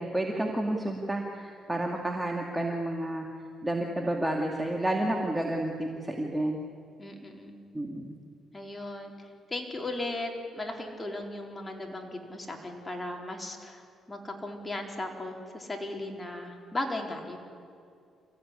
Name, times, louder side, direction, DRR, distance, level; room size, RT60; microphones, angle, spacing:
voice 1, 0.0-3.3 3.6-6.6 7.7-8.2, right 1 dB, 10° right, 1 dB, 2.4 m, -30 dB
voice 2, 7.0-7.5 8.5-13.8 14.1-17.4, left 2 dB, 20° left, 1 dB, 4.3 m, -37 dB
28.5 x 15.5 x 9.9 m, 2.4 s
cardioid pair, 90°, 0 cm